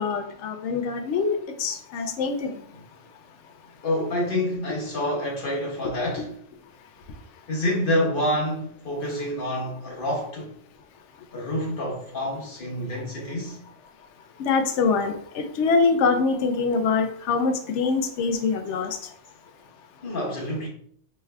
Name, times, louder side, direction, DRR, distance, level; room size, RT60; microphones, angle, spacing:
voice 1, 0.0-2.5 6.2-6.3 14.4-18.9, left 4 dB, 70° left, 0.8 m, -24 dB
voice 2, 3.8-6.3 7.5-10.5 11.3-13.6 20.0-20.7, left 1 dB, 45° left, 1.1 m, -27 dB
4.5 x 3.2 x 2.3 m
omnidirectional pair, 1.3 m